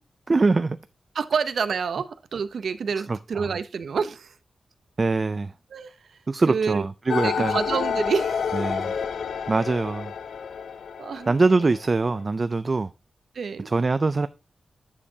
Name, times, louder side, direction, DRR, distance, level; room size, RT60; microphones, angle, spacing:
voice 1, 0.3-0.8 3.0-3.5 5.0-5.5 6.3-7.6 8.5-8.9 9.5-10.1 11.3-12.9 13.6-14.3, right 3 dB, 30° right, 0.3 m, -23 dB
voice 2, 1.1-4.3 5.7-6.0 6.5-6.8 7.2-8.5 11.0-11.3 13.3-13.7, right 6 dB, 75° right, 0.6 m, -28 dB
sound 1, 7.1-12.2, left 7 dB, 80° left, 0.5 m, -29 dB
10.0 x 6.6 x 2.7 m
wide cardioid pair, 180°, 0 cm